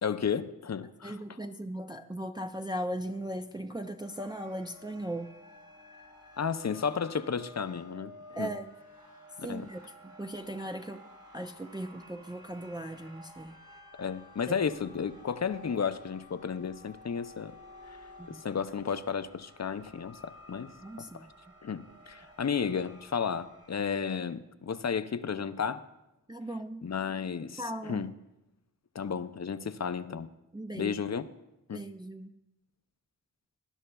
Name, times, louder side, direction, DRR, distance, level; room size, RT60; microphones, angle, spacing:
voice 1, 0.0-1.2 6.4-8.5 9.4-9.7 14.0-17.6 17.9-18.0 18.3-20.7 21.0-21.3 21.6-25.8 26.8-28.1 28.9-30.3 30.7-31.3 31.7-31.8, left 6 dB, 50° left, 0.5 m, -33 dB
voice 2, 1.0-5.3 8.4-8.7 9.4-11.0 11.3-13.6 14.5-14.6 18.2-18.4 20.8-21.3 26.3-26.8 27.6-28.1 30.5-31.0 31.7-32.3, right 1 dB, 15° right, 0.4 m, -38 dB
sound 1, 4.0-23.9, left 1 dB, 80° right, 2.4 m, -53 dB
19.0 x 11.0 x 2.3 m
wide cardioid pair, 60°, 34 cm